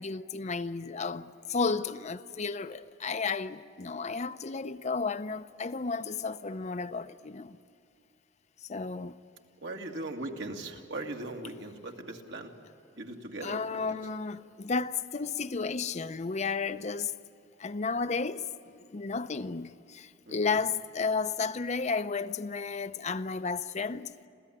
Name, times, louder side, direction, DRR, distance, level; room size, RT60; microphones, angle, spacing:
voice 1, 0.0-7.6 8.7-9.2 13.4-17.1 17.6-24.3, left 4 dB, 40° left, 0.6 m, -33 dB
voice 2, 9.6-12.5 13.0-14.0 20.3-20.6, right 2 dB, 70° right, 2.2 m, -39 dB
27.5 x 16.0 x 10.0 m
head